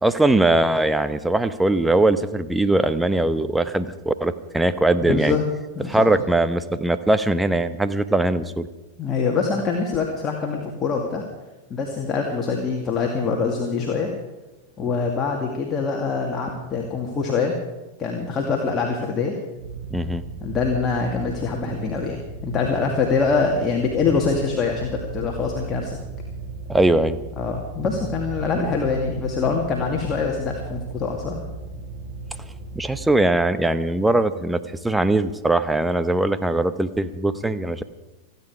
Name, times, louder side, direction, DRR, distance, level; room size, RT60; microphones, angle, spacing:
voice 1, 0.0-5.4 5.9-8.7 19.9-20.2 26.7-27.2 32.7-37.8, right 2 dB, 5° right, 12 dB, 0.9 m, -21 dB
voice 2, 5.0-5.4 5.8-6.1 9.0-11.2 11.7-14.1 14.8-17.5 18.0-19.3 20.4-26.0 27.4-31.4, left 5 dB, 25° left, 0 dB, 2.4 m, -24 dB
sound 1, 19.6-33.1, right 4 dB, 40° right, 6.0 m, -35 dB
29.5 x 10.0 x 4.9 m, 1.1 s
figure-of-eight pair, 90°, 0 cm